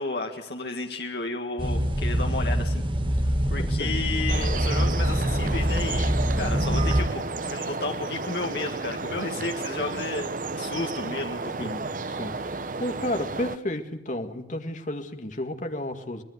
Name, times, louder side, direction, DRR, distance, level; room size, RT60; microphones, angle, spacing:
voice 1, 0.0-2.9 3.5-11.7, left 3 dB, 60° left, 3 dB, 1.8 m, -33 dB
sound 1, 1.6-7.0, equal, 30° right, 2.0 m, -25 dB
voice 2, 3.6-4.0 9.0-9.5 11.6-16.2, left 1 dB, 45° left, 6 dB, 2.0 m, -33 dB
sound 2, 4.3-13.6, right 3 dB, 45° right, 0.9 m, -32 dB
24.5 x 20.0 x 8.0 m, 0.82 s
head